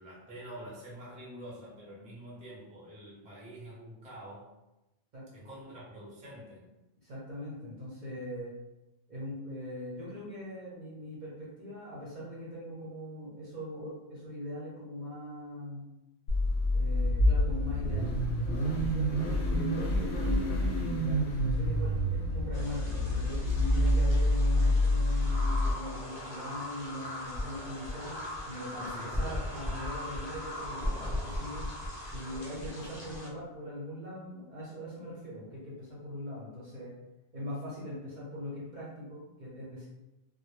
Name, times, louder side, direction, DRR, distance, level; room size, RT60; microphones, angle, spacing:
voice 1, 0.0-4.5 5.3-6.7 28.9-29.2, right 1 dB, 10° right, -6 dB, 0.4 m, -47 dB
voice 2, 5.1-5.5 7.0-8.5 9.1-15.9 16.7-19.1 19.5-31.7 32.0-36.9 37.3-39.9, left 1 dB, 50° right, -6 dB, 0.6 m, -41 dB
Car / Idling / Accelerating revving vroom, 16.3-25.7, left 1 dB, 85° left, 0.9 m, -27 dB
sound 1, 22.5-33.3, equal, 60° left, 0.6 m, -49 dB
sound 2, 25.2-33.3, left 1 dB, 25° left, 0.8 m, -38 dB
2.0 x 2.0 x 3.1 m, 0.97 s
omnidirectional pair, 1.3 m